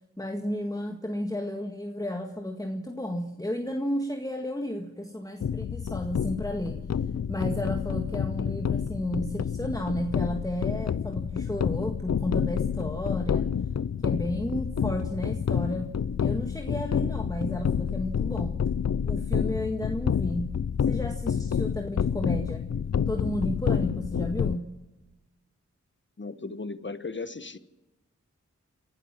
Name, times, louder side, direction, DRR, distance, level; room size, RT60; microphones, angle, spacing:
voice 1, 0.2-6.8 7.3-13.5 14.0-15.9 16.2-18.6 19.1-20.5 20.9-22.6 23.1-24.7, left 1 dB, 10° left, 1.9 m, -32 dB
sound 1, 5.4-24.6, left 7 dB, 60° left, 0.7 m, -29 dB
voice 2, 26.2-27.6, left 3 dB, 40° left, 1.3 m, -36 dB
28.0 x 12.5 x 7.5 m
cardioid pair, 45°, 30 cm